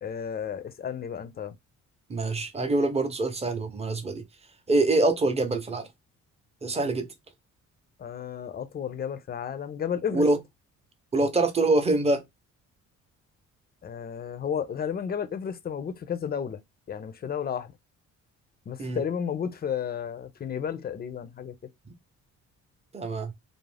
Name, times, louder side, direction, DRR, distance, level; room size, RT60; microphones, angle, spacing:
voice 1, 0.0-1.5 8.0-10.2 13.8-16.6 16.9-17.7 18.7-21.5, left 8 dB, 30° left, 0.5 m, -32 dB
voice 2, 2.1-4.2 4.7-5.9 6.6-7.1 10.1-10.4 11.1-12.2 18.8-19.0 22.9-23.3, right 2 dB, 20° right, 0.7 m, -25 dB
2.5 x 2.0 x 3.3 m
cardioid pair, 90°, 30 cm